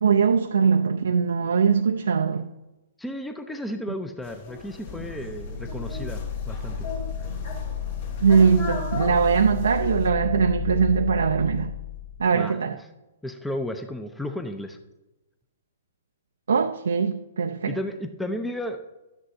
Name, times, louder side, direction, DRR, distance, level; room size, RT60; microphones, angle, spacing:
voice 1, 0.0-2.5 8.2-11.7 12.2-12.8 16.5-17.8, right 6 dB, 80° right, 0.5 m, -21 dB
voice 2, 3.0-6.9 12.3-12.6 13.2-14.8 17.7-18.8, left 1 dB, 5° left, 0.7 m, -33 dB
sound 1, 4.2-10.1, left 3 dB, 55° left, 2.3 m, -38 dB
sound 2, 4.7-12.3, left 8 dB, 75° left, 1.4 m, -32 dB
12.5 x 9.7 x 2.8 m
hypercardioid pair, 125°, 0 cm